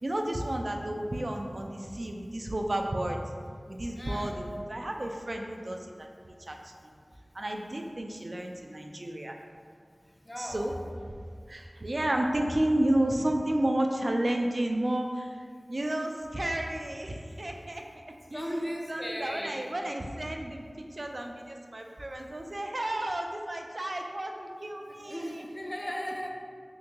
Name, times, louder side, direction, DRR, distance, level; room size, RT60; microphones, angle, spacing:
voice 1, 0.0-3.2 3.7-6.9 7.3-9.3 10.4-10.7 11.5-15.4 15.7-17.8 18.3-18.4 18.9-25.5, right 1 dB, 55° right, 2 dB, 0.3 m, -32 dB
voice 2, 4.0-4.4 10.2-10.8 18.3-19.7 24.9-26.3, equal, 30° left, 0 dB, 0.4 m, -37 dB
3.6 x 2.6 x 2.8 m, 2.1 s
wide cardioid pair, 50°, 0 cm